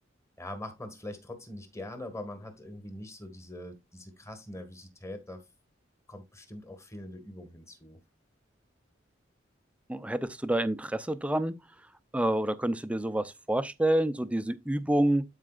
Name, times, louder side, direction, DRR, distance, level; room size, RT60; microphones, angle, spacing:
voice 1, 0.4-5.4 6.1-8.0, left 1 dB, 15° left, 1.6 m, -43 dB
voice 2, 9.9-11.6 12.1-15.2, right 1 dB, 5° right, 0.5 m, -28 dB
12.5 x 4.8 x 2.4 m
head